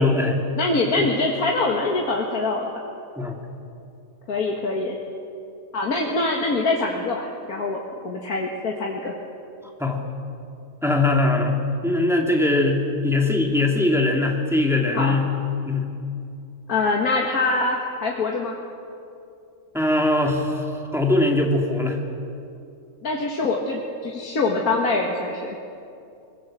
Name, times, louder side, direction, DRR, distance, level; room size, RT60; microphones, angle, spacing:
voice 1, 0.0-0.5 1.0-1.1 3.2-3.4 9.8-10.0 10.8-15.3 15.6-15.8 19.7-22.0, left 2 dB, ahead, 0 dB, 2.4 m, -21 dB
voice 2, 0.5-2.7 4.3-5.0 5.7-9.1 14.9-15.2 16.7-18.6 23.0-25.6, left 3 dB, 70° left, -1 dB, 2.2 m, -24 dB
22.5 x 21.0 x 7.6 m, 2.6 s
omnidirectional pair, 1.6 m